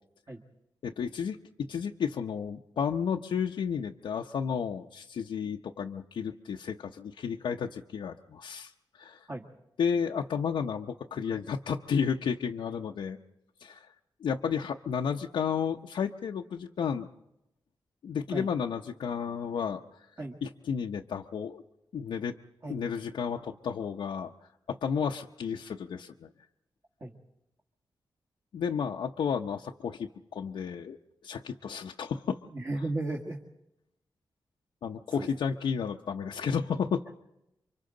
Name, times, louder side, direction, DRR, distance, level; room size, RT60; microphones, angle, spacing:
voice 1, 0.8-8.7 9.0-9.3 9.8-13.2 13.6-13.9 14.2-17.1 18.0-19.8 20.4-21.6 21.9-22.3 22.7-24.3 24.7-26.3 28.5-31.0 31.2-32.4 34.8-37.1, left 7 dB, 85° left, 1 dB, 0.7 m, -32 dB
voice 2, 32.5-33.4 35.1-35.3, right 2 dB, 35° right, -1 dB, 1.8 m, -34 dB
28.5 x 24.5 x 3.9 m, 0.86 s
wide cardioid pair, 130°, 8 cm